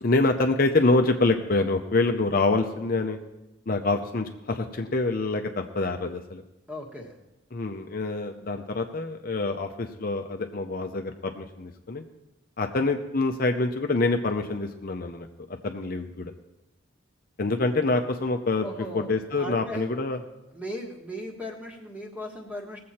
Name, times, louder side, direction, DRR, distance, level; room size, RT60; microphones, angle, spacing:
voice 1, 0.0-3.2 3.7-6.4 7.5-12.0 12.6-16.3 17.4-18.7 18.9-20.2, left 2 dB, 45° left, 5 dB, 0.6 m, -26 dB
voice 2, 6.7-7.2 18.6-19.9 20.5-22.8, equal, 5° right, 1 dB, 1.5 m, -37 dB
19.5 x 7.6 x 4.3 m, 0.95 s
head